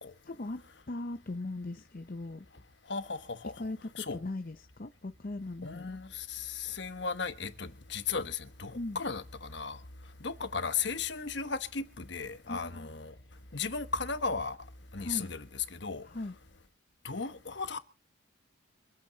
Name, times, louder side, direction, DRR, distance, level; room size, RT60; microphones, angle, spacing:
voice 1, 0.2-2.5 3.6-6.0 8.7-9.0 12.5-13.1 15.0-15.3 16.0-16.4, left 2 dB, 45° left, 0.6 m, -39 dB
voice 2, 2.9-3.6 4.0-4.2 5.6-9.8 10.2-13.1 13.5-14.6 14.9-16.1 17.0-17.8, left 5 dB, 65° left, 1.2 m, -36 dB
25.5 x 8.7 x 3.9 m
head